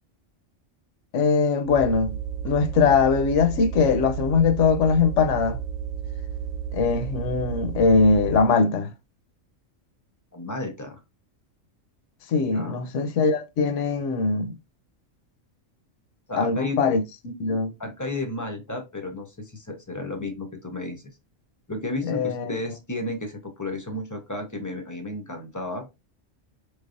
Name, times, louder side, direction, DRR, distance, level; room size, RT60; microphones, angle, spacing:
voice 1, 1.1-2.2 2.4-5.6 6.7-8.9 12.3-14.5 16.3-17.7 22.0-22.6, left 4 dB, 70° left, 1.0 m, -21 dB
sound 1, 1.6-8.5, right 8 dB, 80° right, 1.0 m, -32 dB
voice 2, 10.3-11.0 12.5-12.8 16.3-16.8 17.8-21.0 21.7-25.9, left 2 dB, 20° left, 0.5 m, -33 dB
4.7 x 3.3 x 2.5 m
omnidirectional pair, 1.3 m